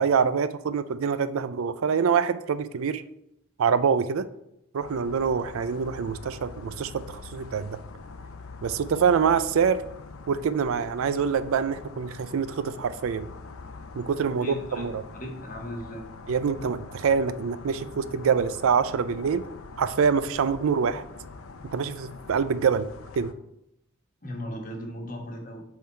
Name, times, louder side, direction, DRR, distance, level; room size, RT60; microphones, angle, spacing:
voice 1, 0.0-3.0 3.6-4.2 4.7-7.8 8.6-9.8 10.3-13.3 14.0-15.0 16.3-19.4 19.8-21.0 21.7-22.9 23.2-23.3, right 6 dB, 75° right, 13 dB, 0.4 m, -25 dB
sound 1, 4.8-23.3, left 3 dB, 80° left, 0.6 m, -44 dB
voice 2, 14.3-14.9 15.1-16.0 24.2-25.6, equal, 40° left, 2 dB, 1.2 m, -37 dB
7.3 x 3.8 x 4.4 m, 0.81 s
head